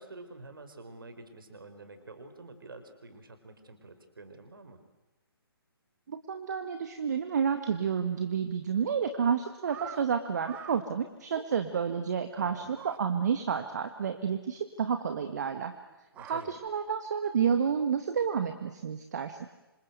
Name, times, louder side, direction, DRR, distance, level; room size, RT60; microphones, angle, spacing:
voice 1, 0.0-4.8 12.4-12.7 16.1-16.5, right 2 dB, 60° right, 9 dB, 4.9 m, -48 dB
voice 2, 6.1-15.7 16.3-19.5, right 7 dB, 45° right, 8 dB, 1.7 m, -30 dB
sound 1, 9.2-10.0 10.4-10.8 11.3-12.0 12.7-13.0 13.3-13.4 13.6-13.7 14.1-14.2 15.9-16.7, right 10 dB, 10° right, 0.9 m, -45 dB
27.0 x 27.0 x 8.2 m, 1.1 s
figure-of-eight pair, 135°, 13 cm